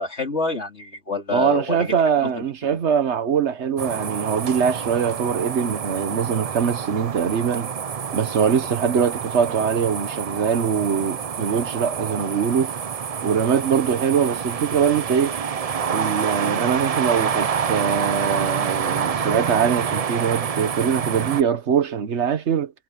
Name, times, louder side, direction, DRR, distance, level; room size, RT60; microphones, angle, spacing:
voice 1, 0.0-1.9 2.2-2.4, left 4 dB, 85° left, 3.9 m, -27 dB
voice 2, 1.3-7.7 8.1-12.7 13.2-15.4 15.9-22.7, right 7 dB, 85° right, 1.4 m, -22 dB
sound 1, 3.8-21.4, right 7 dB, 40° right, 0.6 m, -27 dB
omnidirectional pair, 1.1 m